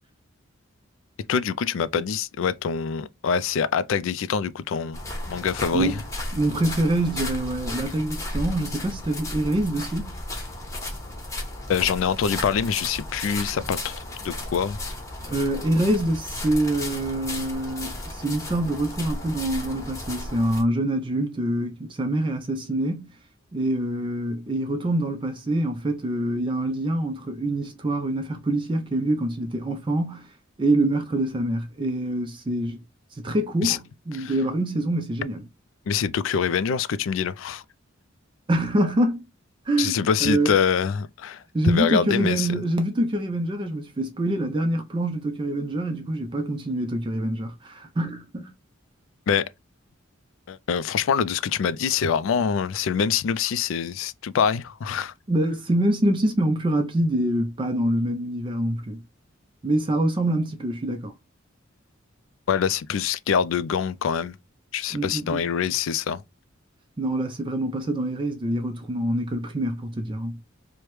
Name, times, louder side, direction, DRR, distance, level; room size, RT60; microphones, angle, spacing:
voice 1, 1.3-5.0 5.3-5.9 11.7-14.0 14.2-14.9 33.6-33.8 34.1-34.3 35.9-37.6 39.8-42.5 49.3-49.5 50.5-55.1 62.5-64.3 64.7-66.2, left 7 dB, 70° left, 0.3 m, -25 dB
sound 1, 4.9-20.6, left 1 dB, 15° left, 1.0 m, -34 dB
voice 2, 5.7-6.0 6.3-10.1 15.2-23.1 23.5-30.3 30.6-32.8 33.1-35.5 38.5-39.2 39.7-40.6 41.5-48.5 55.3-59.0 59.6-61.1 64.9-65.4 67.0-70.4, right 1 dB, 25° right, 0.4 m, -25 dB
4.8 x 2.1 x 3.0 m
head